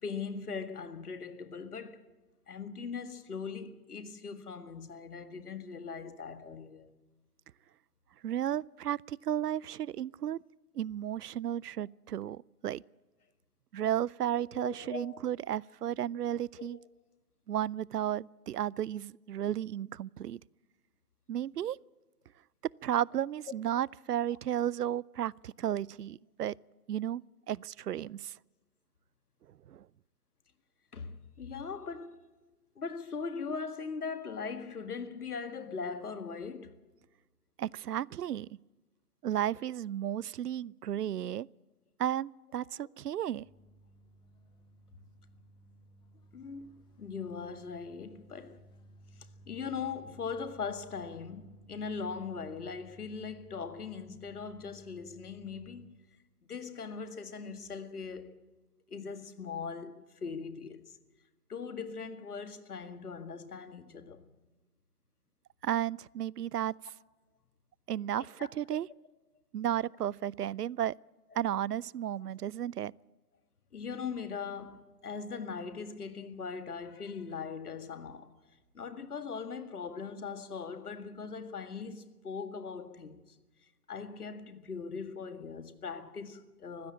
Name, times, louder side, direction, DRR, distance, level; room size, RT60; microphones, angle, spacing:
voice 1, 0.0-2.1 2.5-6.9 14.3-15.2 16.6-16.7 30.9-32.2 32.8-36.8 46.3-48.6 49.5-56.0 56.5-58.4 58.9-60.8 61.5-64.2 68.2-68.5 71.3-71.4 73.7-78.3 78.7-83.4 83.9-86.9, left 5 dB, 75° left, 2.0 m, -40 dB
voice 2, 8.2-10.4 10.7-12.8 13.7-16.8 17.5-20.4 21.3-21.8 22.8-26.6 26.9-28.3 29.7-29.9 37.6-38.6 39.2-41.5 42.0-43.5 65.6-66.9 67.9-68.9 69.5-70.9 71.4-72.9, right 11 dB, 85° right, 0.5 m, -33 dB
sound 1, 43.3-55.9, right 1 dB, 10° left, 1.2 m, -58 dB
20.0 x 15.5 x 8.7 m
figure-of-eight pair, 140°, 46 cm